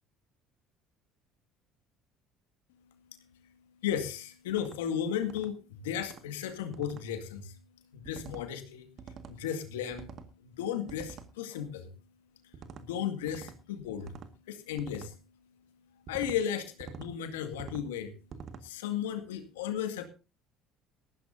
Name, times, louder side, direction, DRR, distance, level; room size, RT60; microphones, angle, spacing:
voice 1, 3.8-7.6 7.9-8.9 9.3-10.1 10.4-11.9 12.8-14.1 14.5-15.1 16.1-18.1 18.6-20.0, left 9 dB, 85° left, 8 dB, 2.1 m, -34 dB
sound 1, 4.5-4.8 5.2-5.5 6.0-6.2 6.7-7.0 8.0-8.4 9.0-9.4 9.9-10.3 10.9-11.3 12.5-12.8 13.3-13.6 14.0-14.3 14.8-15.1 16.1-16.4 16.8-17.1 17.5-17.9 18.3-18.6, right 6 dB, 50° right, 1.8 m, -46 dB
19.0 x 14.5 x 2.7 m, 0.32 s
hypercardioid pair, 70°, 0 cm